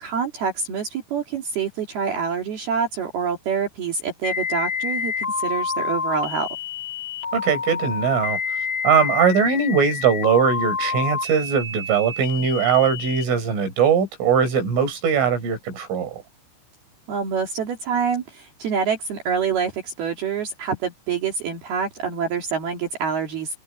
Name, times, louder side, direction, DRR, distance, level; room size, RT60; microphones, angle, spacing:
voice 1, 0.0-6.5 17.1-23.6, right 6 dB, 60° right, 4.2 m, -26 dB
sound 1, 4.2-13.2, left 5 dB, 40° left, 6.6 m, -28 dB
voice 2, 7.3-8.4 8.8-16.2, right 6 dB, 85° right, 8.0 m, -20 dB
omnidirectional pair, 5.5 m